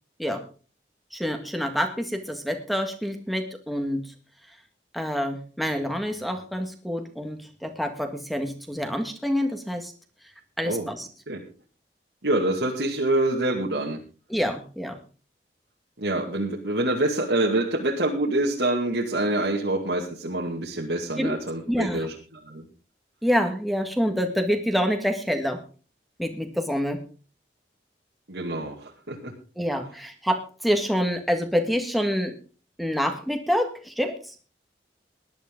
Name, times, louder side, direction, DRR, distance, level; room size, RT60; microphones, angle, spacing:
voice 1, 1.1-4.1 4.9-9.9 10.6-11.1 14.3-15.0 21.2-21.4 21.7-22.1 23.2-25.6 26.2-27.0 29.5-32.3 32.8-34.3, equal, ahead, 5 dB, 1.7 m, -27 dB
voice 2, 12.2-14.0 16.0-22.7 28.3-29.3, right 1 dB, 75° right, -2 dB, 2.2 m, -26 dB
18.5 x 11.5 x 3.8 m, 0.38 s
head